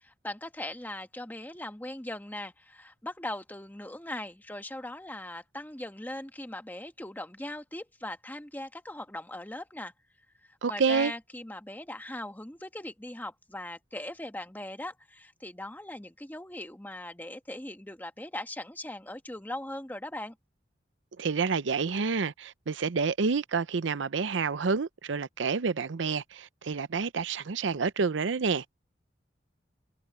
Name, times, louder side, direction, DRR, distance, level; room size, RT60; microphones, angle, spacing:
voice 1, 0.0-9.9 10.4-20.3, left 1 dB, 10° left, 1.3 m, -40 dB
voice 2, 10.6-11.1 21.2-28.9, right 5 dB, 75° right, 0.6 m, -29 dB
head